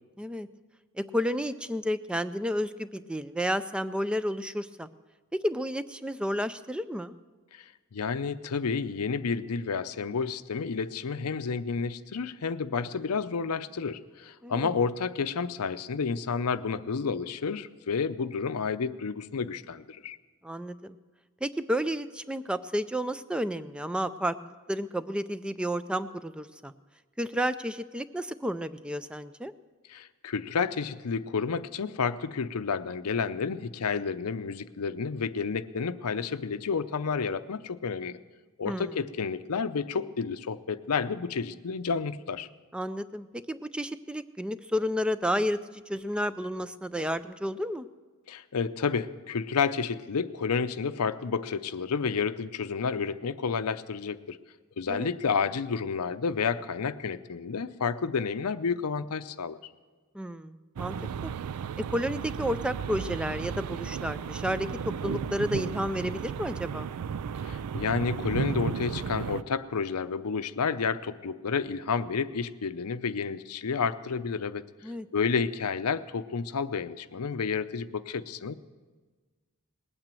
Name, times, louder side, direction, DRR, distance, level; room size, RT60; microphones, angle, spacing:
voice 1, 0.2-0.5 1.0-4.9 5.4-7.1 14.4-14.7 20.4-21.0 21.4-26.7 27.2-29.5 38.7-39.0 42.7-47.9 54.9-55.1 60.1-61.0 61.2-61.3 61.9-66.9 74.8-75.1, equal, 5° right, 13 dB, 0.4 m, -31 dB
voice 2, 7.5-20.2 29.9-38.2 38.6-42.5 48.3-54.4 54.8-59.6 67.4-74.7 75.1-78.5, left 5 dB, 90° left, 12 dB, 0.6 m, -30 dB
sound 1, 60.8-69.4, right 7 dB, 85° right, 0.4 m, -34 dB
19.5 x 9.0 x 7.6 m, 1.4 s
head